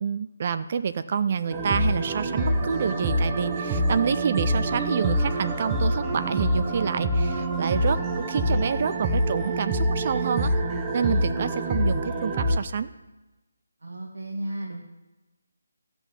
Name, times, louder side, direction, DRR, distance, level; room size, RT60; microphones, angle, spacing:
voice 1, 0.0-10.5 10.9-12.9, right 6 dB, 40° right, 12 dB, 0.4 m, -28 dB
sound 1, 1.5-12.6, right 1 dB, 20° right, 0.8 m, -26 dB
voice 2, 13.8-14.8, right 1 dB, 80° right, -1 dB, 1.5 m, -33 dB
13.0 x 6.1 x 6.9 m, 1.1 s
figure-of-eight pair, 155°, 0 cm